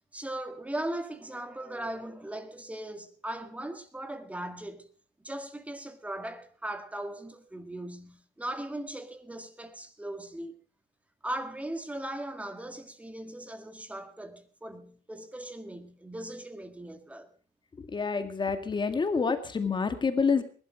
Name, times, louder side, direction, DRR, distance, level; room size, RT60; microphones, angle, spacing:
voice 1, 0.1-4.9 5.2-10.6 11.2-17.3, right 1 dB, 10° right, 1.9 m, -38 dB
voice 2, 17.8-20.4, left 5 dB, 25° left, 2.1 m, -28 dB
20.0 x 12.0 x 5.1 m
cardioid pair, 110°, 17 cm